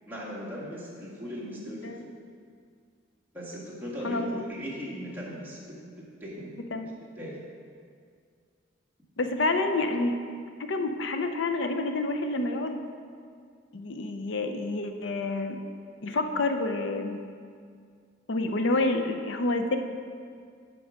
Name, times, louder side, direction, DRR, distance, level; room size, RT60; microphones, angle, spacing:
voice 1, 0.1-2.1 3.3-5.8 6.2-6.6 7.2-7.4, equal, 10° right, -7 dB, 1.8 m, -38 dB
voice 2, 4.0-4.4 6.7-6.9 9.2-10.2 10.6-12.8 13.7-15.6 16.0-17.2 18.3-19.8, left 2 dB, 70° left, 6 dB, 0.6 m, -28 dB
8.0 x 4.6 x 6.2 m, 2.2 s
head